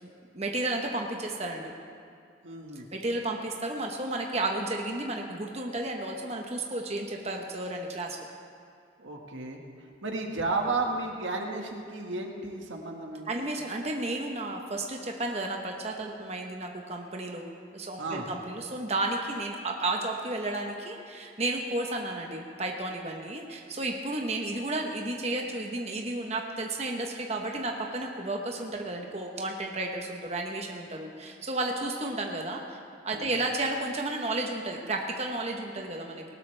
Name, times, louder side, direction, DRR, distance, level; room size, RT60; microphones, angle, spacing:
voice 1, 0.3-1.7 2.9-8.2 13.3-36.2, right 2 dB, 35° right, 1 dB, 1.1 m, -32 dB
voice 2, 2.4-2.9 9.0-9.6 10.0-13.4 18.0-18.3 33.2-33.3, right 3 dB, 85° right, 1 dB, 1.8 m, -33 dB
19.5 x 18.5 x 3.4 m, 2.4 s
head